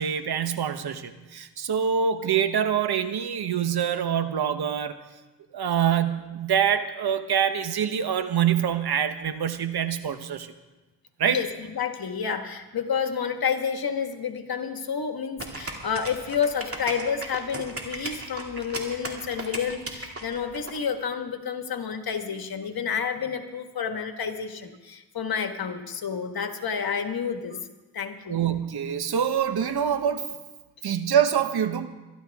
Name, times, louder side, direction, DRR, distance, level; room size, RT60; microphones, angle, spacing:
voice 1, 0.0-5.0 5.5-10.5 11.2-11.4 28.3-30.3 30.8-31.9, right 8 dB, 65° right, 10 dB, 1.1 m, -25 dB
voice 2, 11.2-27.6 27.9-28.4, left 7 dB, 60° left, 6 dB, 1.6 m, -30 dB
sound 1, 15.4-20.7, right 2 dB, 35° right, 2.7 m, -36 dB
23.0 x 12.0 x 3.6 m, 1.1 s
cardioid pair, 70°, 41 cm